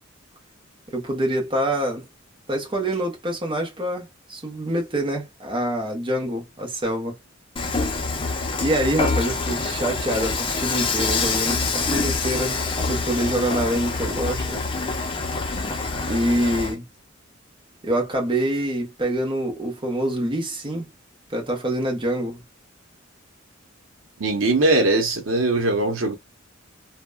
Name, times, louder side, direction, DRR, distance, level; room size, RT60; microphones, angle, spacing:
voice 1, 0.9-2.0 2.5-7.1 8.6-12.6 12.9-14.6 16.1-16.8 17.8-20.9 21.3-22.4, right 1 dB, 25° right, 0.9 m, -25 dB
Dishes pots and pans / Frying (food), 7.6-16.7, left 3 dB, 25° left, 0.6 m, -26 dB
voice 2, 24.2-26.1, right 2 dB, 85° right, 0.8 m, -20 dB
2.9 x 2.2 x 2.2 m
head